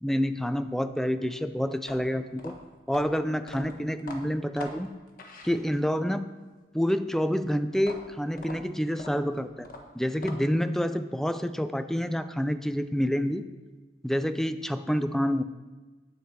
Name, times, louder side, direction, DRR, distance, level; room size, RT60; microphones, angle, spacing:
voice 1, 0.0-2.5 2.9-4.9 5.4-6.2 6.7-9.7 9.9-13.4 14.0-15.4, equal, ahead, 10 dB, 0.4 m, -28 dB
sound 1, 1.8-6.1 7.7-10.7, left 1 dB, 50° left, 1.2 m, -44 dB
9.5 x 8.4 x 4.7 m, 1.3 s
head